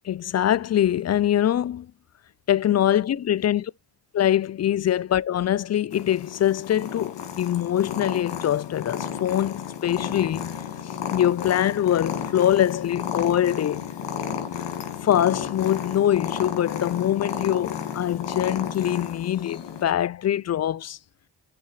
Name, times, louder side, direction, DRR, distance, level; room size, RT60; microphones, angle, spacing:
voice 1, 0.0-1.9 2.5-3.7 4.1-10.5 10.8-13.9 15.0-21.0, left 11 dB, 40° left, 0.4 m, -23 dB
Purr, 5.9-19.8, left 8 dB, 75° left, 2.0 m, -32 dB
8.4 x 4.3 x 4.8 m
supercardioid pair, 55°, 42 cm